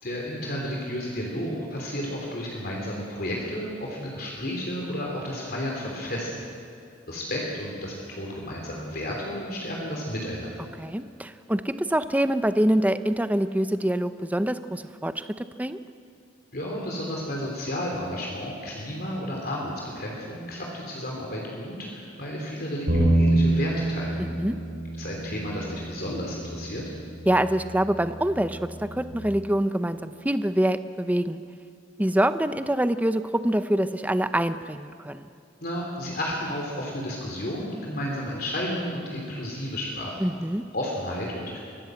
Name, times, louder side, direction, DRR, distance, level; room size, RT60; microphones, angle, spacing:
voice 1, 0.0-6.5 7.1-10.7 16.5-24.2 25.0-26.8 35.6-40.2 40.7-41.6, equal, 50° left, -2 dB, 3.4 m, -32 dB
voice 2, 10.8-15.8 24.4-24.6 27.3-31.4 32.0-35.3 40.2-40.6, right 1 dB, 10° right, 11 dB, 0.6 m, -25 dB
Bass guitar, 22.9-29.1, right 1 dB, 60° right, 5.6 m, -27 dB
24.0 x 17.5 x 7.8 m, 2.4 s
head